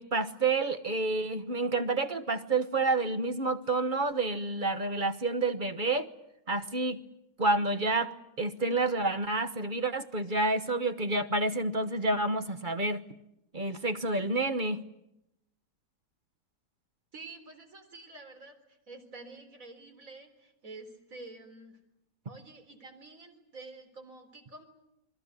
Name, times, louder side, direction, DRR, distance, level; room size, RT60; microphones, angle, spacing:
voice 1, 0.0-6.1 6.5-7.0 7.4-13.0 13.5-14.8, right 2 dB, 35° right, 9 dB, 1.1 m, -29 dB
voice 2, 17.1-21.8 22.3-24.6, right 3 dB, 50° right, 6 dB, 4.4 m, -48 dB
28.5 x 22.0 x 8.2 m, 0.86 s
omnidirectional pair, 1.8 m